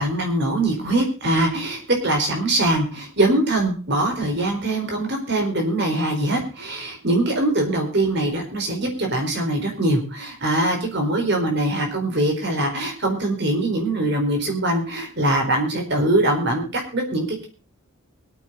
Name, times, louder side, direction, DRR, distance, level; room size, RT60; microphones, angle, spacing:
voice 1, 0.0-17.5, right 1 dB, 55° right, 3 dB, 4.5 m, -22 dB
23.5 x 9.2 x 4.0 m, 0.37 s
head